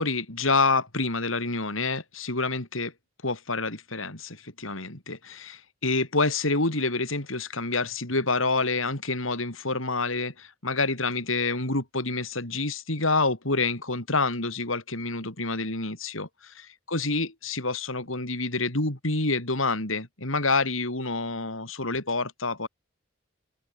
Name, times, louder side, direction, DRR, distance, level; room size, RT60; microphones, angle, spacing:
voice 1, 0.0-2.9 3.2-22.7, left 3 dB, 90° left, 5.7 m, -28 dB
open air
head